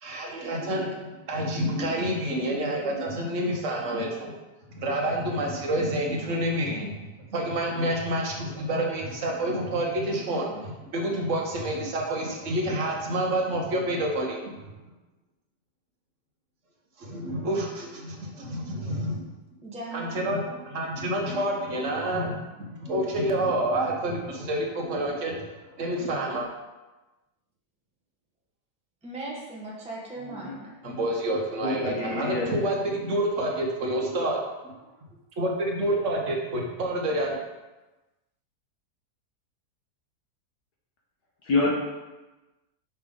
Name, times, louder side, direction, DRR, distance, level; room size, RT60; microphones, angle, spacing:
voice 1, 0.0-4.3 4.7-6.9 7.3-14.4 17.0-19.2 19.9-22.4 22.8-25.4 25.8-26.5 30.8-34.7 35.4-37.3, right 1 dB, 50° right, 0 dB, 1.4 m, -28 dB
voice 2, 19.6-20.6 29.0-30.7, right 2 dB, 5° right, -4 dB, 1.0 m, -38 dB
voice 3, 30.2-30.5 30.8-30.9 31.6-32.5 41.4-41.7, left 3 dB, 75° left, -3 dB, 1.6 m, -27 dB
5.6 x 5.6 x 3.6 m, 1.1 s
omnidirectional pair, 1.8 m